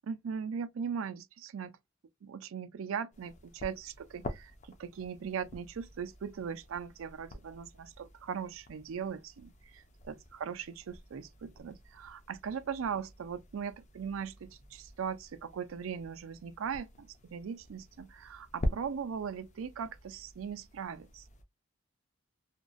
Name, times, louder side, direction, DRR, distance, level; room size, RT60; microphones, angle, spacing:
voice 1, 0.0-1.8 2.2-21.3, right 7 dB, 85° right, 0.4 m, -39 dB
sound 1, 3.1-21.4, left 1 dB, 35° left, 0.5 m, -46 dB
2.9 x 2.4 x 2.3 m
head